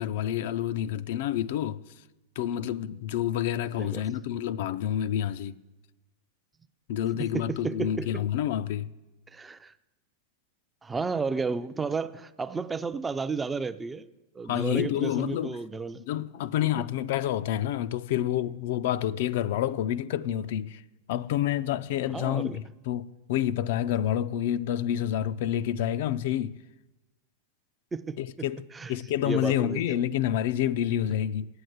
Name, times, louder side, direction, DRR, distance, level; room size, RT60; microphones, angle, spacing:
voice 1, 0.0-1.8 2.4-5.6 6.9-8.9 14.5-15.6 15.9-20.8 21.1-26.6 28.2-31.5, left 11 dB, 65° left, 0.4 m, -28 dB
voice 2, 7.3-8.2 9.3-9.7 10.8-14.1 14.3-16.0 22.1-22.6 27.9-28.2 28.7-28.9 29.2-29.8, right 4 dB, 15° right, 0.4 m, -32 dB
8.4 x 7.8 x 7.9 m
supercardioid pair, 135°, 0 cm